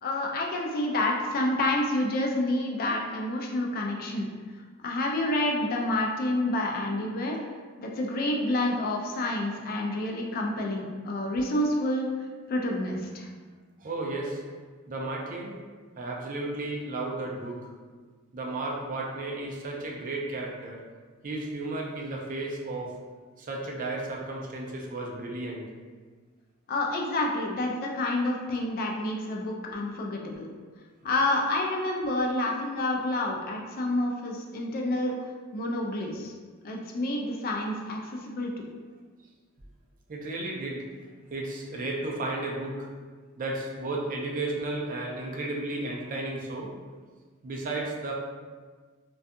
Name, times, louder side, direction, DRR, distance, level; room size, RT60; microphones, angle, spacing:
voice 1, 0.0-4.3 4.8-7.4 7.8-12.1 12.5-13.3 26.7-30.5 31.0-35.1 35.5-36.3 36.6-38.7, left 1 dB, 45° left, 0 dB, 0.3 m, -28 dB
voice 2, 13.8-14.4 14.9-15.5 16.0-17.6 18.3-20.8 21.2-22.9 23.4-25.7 40.1-40.8 41.3-42.9 43.4-46.7 47.4-48.1, right 2 dB, 40° right, -2 dB, 0.4 m, -33 dB
2.5 x 2.3 x 2.5 m, 1.5 s
head